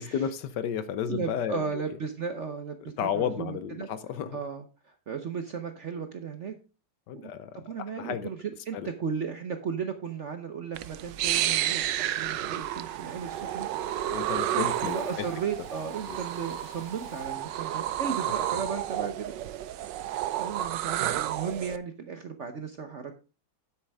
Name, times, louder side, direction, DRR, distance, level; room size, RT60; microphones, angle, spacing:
voice 1, 0.0-1.8 3.0-4.4 7.1-8.3 8.7-8.9 14.1-15.2 16.1-16.2 18.3-18.4, left 8 dB, 70° left, 1.2 m, -32 dB
voice 2, 1.1-3.9 4.3-6.5 7.1-20.0 20.4-23.2, right 6 dB, 55° right, 0.8 m, -36 dB
Drill, 10.6-10.8 11.2-11.7 12.0-12.5 12.9-17.5, left 1 dB, 5° left, 1.3 m, -57 dB
sound 1, 10.7-21.8, right 12 dB, 70° right, 1.2 m, -31 dB
9.8 x 8.2 x 3.4 m
omnidirectional pair, 2.1 m